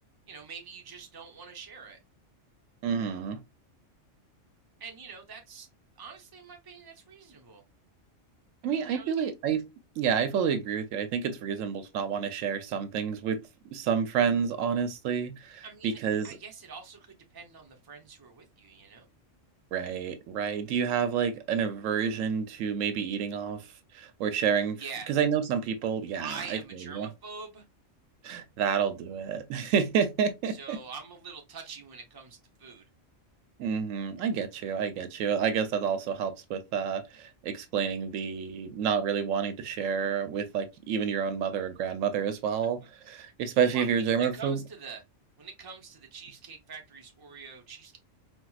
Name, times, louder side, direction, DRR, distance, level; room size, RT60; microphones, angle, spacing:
voice 1, 0.3-2.0 4.8-5.7 6.0-7.6 8.9-9.1 15.6-16.0 16.2-19.1 24.8-25.1 26.2-27.6 30.5-32.9 43.7-45.0 45.4-48.0, right 5 dB, 25° right, 0.5 m, -44 dB
voice 2, 2.8-3.4 8.6-9.6 10.0-13.4 13.7-16.3 19.7-23.7 23.9-27.1 28.2-30.8 33.6-42.8 43.1-44.6, right 7 dB, 90° right, 1.0 m, -29 dB
4.4 x 2.3 x 2.3 m
omnidirectional pair, 1.3 m